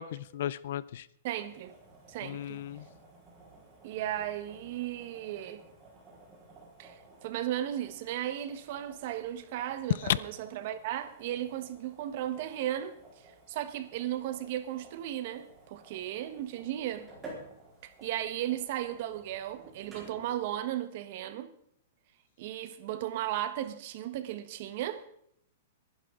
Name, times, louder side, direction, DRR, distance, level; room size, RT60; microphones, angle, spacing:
voice 1, 0.0-1.1 2.2-2.8 10.1-10.2, left 11 dB, 60° left, 0.5 m, -33 dB
voice 2, 1.2-1.7 2.1-2.6 3.8-5.6 6.8-17.1 17.8-21.5 22.4-25.0, right 12 dB, 45° right, 1.2 m, -35 dB
sound 1, 1.4-20.5, right 2 dB, 15° right, 4.2 m, -54 dB
22.0 x 11.0 x 3.8 m
supercardioid pair, 165°, 0 cm